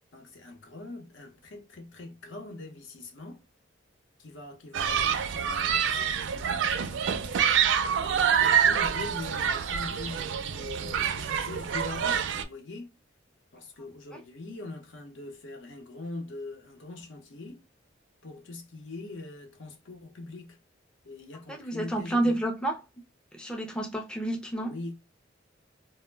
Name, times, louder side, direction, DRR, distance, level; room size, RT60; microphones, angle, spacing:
voice 1, 0.1-3.4 4.2-7.3 8.0-13.0 13.5-17.6 18.2-20.6 21.0-22.4 24.5-24.9, left 2 dB, 80° left, 0.7 m, -42 dB
Human group actions, 4.7-12.4, right 8 dB, 70° right, 0.4 m, -26 dB
voice 2, 21.5-22.8 23.3-24.7, right 1 dB, 5° left, 0.4 m, -29 dB
2.1 x 2.0 x 3.1 m
head